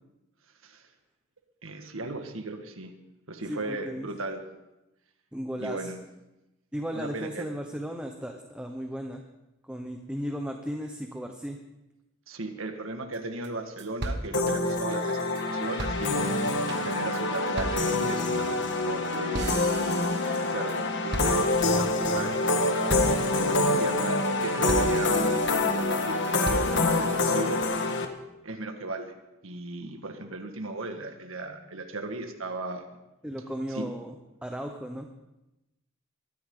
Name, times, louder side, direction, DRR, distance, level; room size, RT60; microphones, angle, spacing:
voice 1, 1.6-2.9 3.3-4.4 5.6-6.0 6.9-7.5 12.3-15.2 15.5-16.4 16.8-19.6 20.5-20.7 21.0-27.8 28.4-29.1 29.4-32.8 33.7-33.9, right 2 dB, 80° right, 5 dB, 1.8 m, -36 dB
voice 2, 3.5-4.1 5.3-5.9 6.7-9.2 9.6-11.6 23.7-23.8 33.2-34.1 34.4-35.1, equal, 5° right, 3 dB, 1.0 m, -35 dB
sound 1, 13.1-13.2 13.4-13.5 13.8-15.4 15.8-20.8 21.1-21.8 22.2-22.5 22.9-23.4 23.8-24.3 24.7-25.6 26.0-27.0, right 1 dB, 55° right, 1.5 m, -36 dB
sound 2, 14.3-28.1, left 2 dB, 60° left, 1.5 m, -26 dB
Bird, 14.6-18.3 20.1-21.9, left 2 dB, 25° left, 5.3 m, -47 dB
22.5 x 14.0 x 3.9 m, 0.96 s
head